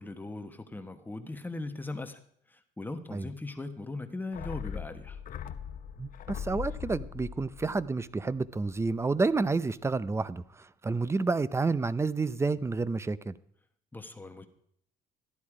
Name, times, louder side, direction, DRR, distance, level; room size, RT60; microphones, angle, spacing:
voice 1, 0.0-2.2 2.5-5.2 13.9-14.5, left 2 dB, 10° left, 1.2 m, -39 dB
sound 1, 4.3-8.9 9.2-9.3, left 8 dB, 55° left, 0.9 m, -40 dB
voice 2, 6.0-10.4 10.8-13.3, right 3 dB, 15° right, 0.6 m, -29 dB
14.0 x 10.5 x 4.9 m
cardioid pair, 110°, 17 cm